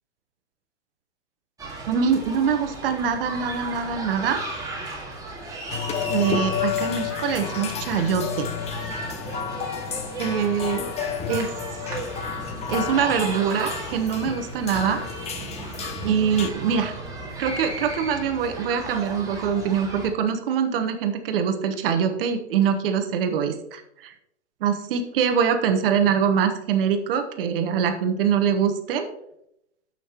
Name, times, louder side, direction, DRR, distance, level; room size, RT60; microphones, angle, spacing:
sound 1, 1.6-20.1, right 2 dB, 10° right, 2.0 m, -36 dB
voice 1, 1.9-4.4 6.1-8.5 10.2-10.9 11.3-11.5 12.7-15.0 16.0-16.9 17.4-24.1 24.6-29.1, right 7 dB, 50° right, 7 dB, 1.2 m, -24 dB
sound 2, 5.7-16.5, left 8 dB, 20° left, 0.8 m, -31 dB
13.0 x 5.8 x 2.9 m, 0.78 s
hypercardioid pair, 115°, 35 cm